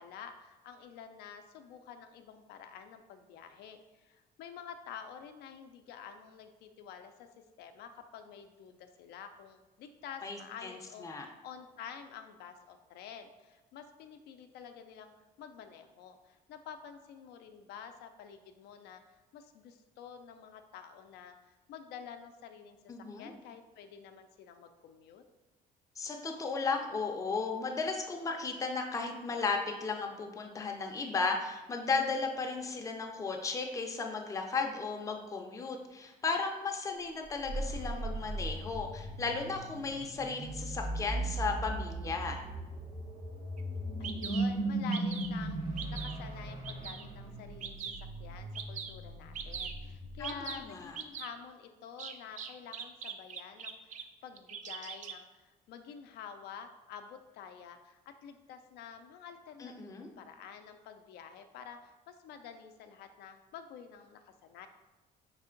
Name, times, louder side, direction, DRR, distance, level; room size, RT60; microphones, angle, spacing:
voice 1, 0.0-7.3 7.6-15.1 15.4-22.8 23.2-25.2 44.0-45.6 45.9-47.9 48.2-64.7, left 7 dB, 75° left, 7 dB, 0.4 m, -49 dB
voice 2, 10.2-11.3 22.9-23.3 26.0-42.4 50.2-51.0 59.6-60.1, left 4 dB, 20° left, 2 dB, 0.5 m, -35 dB
sound 1, 37.2-50.7, right 2 dB, 80° right, 1.3 m, -38 dB
Bird vocalization bird call bird song, 43.6-43.7 44.0-44.4 44.9-45.4 45.8-46.2 46.6-47.0 47.6-48.0 48.5-48.9 49.3-49.7 50.2-50.6 51.0-51.3 52.0-54.0 54.4-55.2, right 7 dB, 45° right, 0.4 m, -41 dB
3.6 x 3.3 x 3.8 m, 1.1 s
cardioid pair, 110°, 17 cm